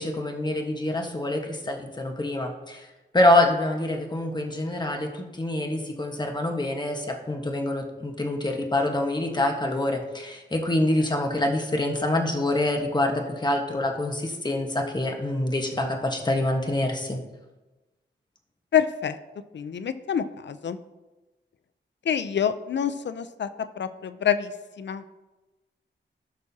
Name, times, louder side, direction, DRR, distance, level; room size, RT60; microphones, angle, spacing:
voice 1, 0.0-2.9 3.1-17.2, left 1 dB, 20° left, 3 dB, 1.4 m, -26 dB
voice 2, 18.7-19.2 19.5-20.8 22.0-23.5 23.8-24.5 24.8-25.0, left 8 dB, 65° left, 12 dB, 0.6 m, -26 dB
15.5 x 6.1 x 2.8 m, 1.1 s
wide cardioid pair, 85°, 20 cm